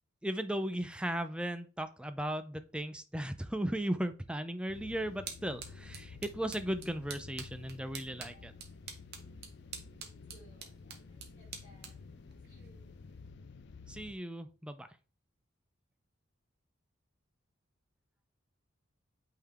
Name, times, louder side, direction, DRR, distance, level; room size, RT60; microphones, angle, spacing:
voice 1, 0.2-8.5 13.9-14.9, right 1 dB, 5° right, 10 dB, 0.5 m, -36 dB
sound 1, 4.6-13.3, right 6 dB, 55° right, 1.2 m, -50 dB
sound 2, 4.7-14.1, left 4 dB, 60° left, 0.5 m, -51 dB
voice 2, 8.1-8.7 9.4-9.5 9.8-12.0 12.5-12.8, equal, 40° left, -3 dB, 4.0 m, -64 dB
8.5 x 3.8 x 3.5 m, 0.34 s
head